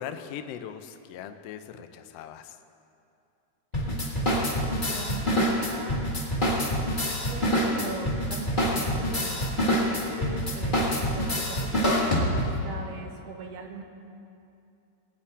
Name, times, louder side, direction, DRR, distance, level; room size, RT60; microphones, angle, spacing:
voice 1, 0.0-2.6, left 8 dB, 80° left, 8 dB, 1.4 m, -40 dB
sound 1, 3.7-12.7, equal, 25° left, 1.0 m, -26 dB
voice 2, 4.1-6.5 7.1-9.5 9.8-13.8, right 3 dB, 80° right, 2 dB, 2.7 m, -41 dB
20.0 x 8.9 x 4.2 m, 2.6 s
omnidirectional pair, 3.6 m